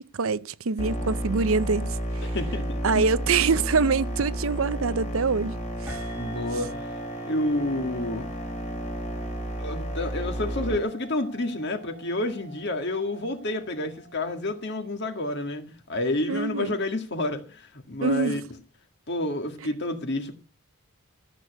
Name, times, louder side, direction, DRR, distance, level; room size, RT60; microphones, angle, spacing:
voice 1, 0.0-2.3 2.8-6.0 16.3-16.8 18.0-18.4, right 4 dB, 65° right, 0.6 m, -25 dB
sound 1, 0.8-10.8, equal, 30° left, 2.8 m, -32 dB
voice 2, 2.2-3.0 6.1-6.8 7.2-8.3 9.6-18.4 19.1-20.4, left 1 dB, 50° left, 2.0 m, -29 dB
sound 2, 5.9-14.9, right 4 dB, 5° right, 1.6 m, -45 dB
14.0 x 6.8 x 8.2 m
head